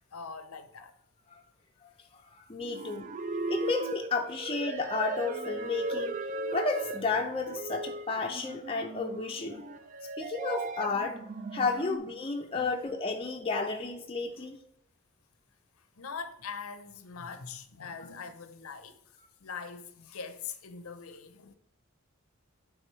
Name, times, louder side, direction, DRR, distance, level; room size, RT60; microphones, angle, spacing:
voice 1, 0.1-0.9 12.5-12.7 16.0-18.9 19.4-21.6, left 5 dB, 80° left, 0.7 m, -42 dB
voice 2, 2.3-3.1 3.5-6.2 6.5-9.6 10.2-11.2 11.5-14.6 17.2-17.3, left 4 dB, 25° left, 0.5 m, -32 dB
sound 1, 2.6-12.0, right 3 dB, 35° right, 0.4 m, -37 dB
8.9 x 3.6 x 3.1 m
head